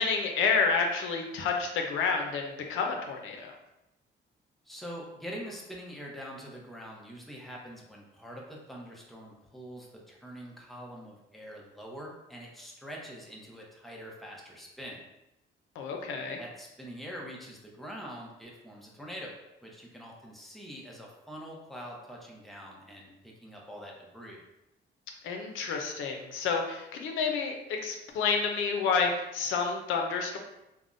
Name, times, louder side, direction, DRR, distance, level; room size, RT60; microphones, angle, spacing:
voice 1, 0.0-3.6 15.8-16.4 25.2-30.4, left 5 dB, 85° left, 2 dB, 0.5 m, -29 dB
voice 2, 4.6-15.0 16.4-19.3 19.6-24.4, equal, ahead, -3 dB, 0.7 m, -44 dB
3.4 x 2.1 x 2.5 m, 0.91 s
cardioid pair, 90°, 20 cm